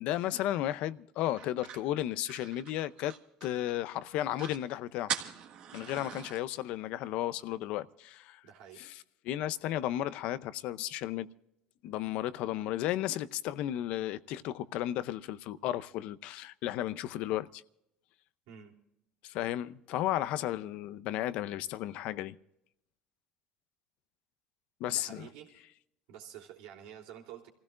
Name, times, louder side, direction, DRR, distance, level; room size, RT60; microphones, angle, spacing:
voice 1, 0.0-3.1 3.4-5.1 5.7-8.4 8.8-9.0 9.2-11.3 11.8-17.6 19.2-22.4 24.8-25.3, left 13 dB, 65° left, 0.6 m, -34 dB
sound 1, 1.4-3.7 4.1-4.2 4.3-4.6 5.1-6.4, right 9 dB, 55° right, 1.6 m, -41 dB
voice 2, 8.4-8.8 18.5-18.7 24.9-25.5 26.1-27.5, right 9 dB, 85° right, 3.3 m, -49 dB
28.0 x 16.0 x 2.5 m
cardioid pair, 140°, 2 cm